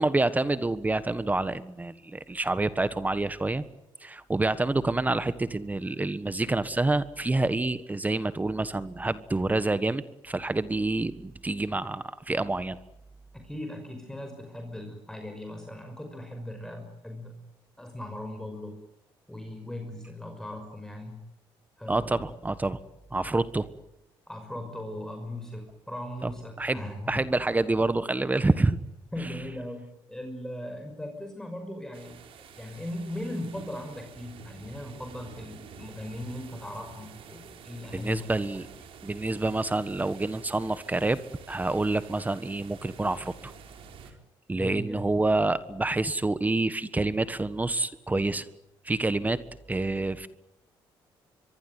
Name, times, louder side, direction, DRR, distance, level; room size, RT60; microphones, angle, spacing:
voice 1, 0.0-3.6 4.0-12.8 21.9-22.8 23.1-23.7 26.2-26.3 26.6-28.8 37.9-38.7 39.0-41.2 41.5-43.5 44.5-48.5 48.8-49.4 49.7-50.3, right 2 dB, 15° right, 14 dB, 1.4 m, -27 dB
voice 2, 13.3-17.4 17.8-18.8 19.3-21.2 21.8-22.2 24.3-27.3 29.1-32.2 32.5-38.3 44.5-45.1, left 1 dB, 5° left, 4 dB, 5.8 m, -38 dB
sound 1, 31.9-44.1, right 6 dB, 75° right, 4.4 m, -49 dB
24.0 x 23.5 x 9.5 m, 0.82 s
cardioid pair, 90°, 9 cm